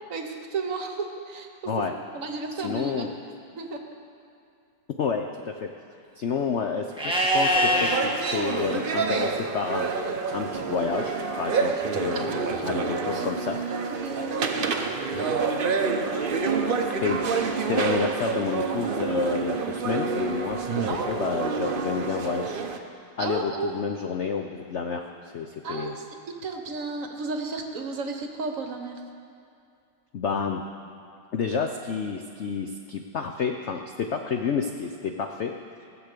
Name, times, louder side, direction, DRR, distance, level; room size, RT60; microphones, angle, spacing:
voice 1, 0.1-1.5 1.8-1.9 2.1-3.8 12.1-13.4 13.7-15.5 16.1-17.2 20.9-21.2 23.2-23.8 25.6-29.0, right 4 dB, 50° right, 4 dB, 1.2 m, -34 dB
voice 2, 1.7-2.0 2.6-3.1 5.0-5.7 6.1-9.9 10.2-13.6 15.1-15.4 17.0-22.6 23.2-26.0 30.1-30.6 31.3-35.5, left 5 dB, 75° left, 4 dB, 0.6 m, -30 dB
Livestock farm animals working animals, 7.0-8.0 10.9-11.8, equal, 5° right, 1.0 m, -25 dB
sound 1, 7.6-22.8, right 5 dB, 90° right, 0.4 m, -28 dB
17.5 x 7.2 x 6.7 m, 2.5 s
omnidirectional pair, 2.0 m